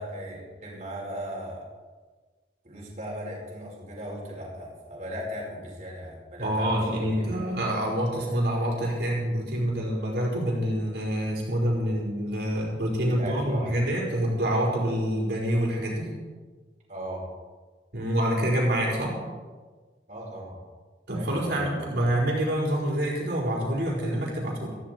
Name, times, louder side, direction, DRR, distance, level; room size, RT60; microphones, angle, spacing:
voice 1, 0.0-1.6 2.6-6.9 7.2-7.5 13.1-13.7 16.9-17.3 20.1-20.6 21.1-22.1, equal, 40° right, -4 dB, 4.9 m, -38 dB
voice 2, 6.4-16.1 17.9-19.1 21.1-24.7, equal, 65° right, -3 dB, 4.7 m, -26 dB
16.5 x 15.0 x 4.6 m, 1.4 s
head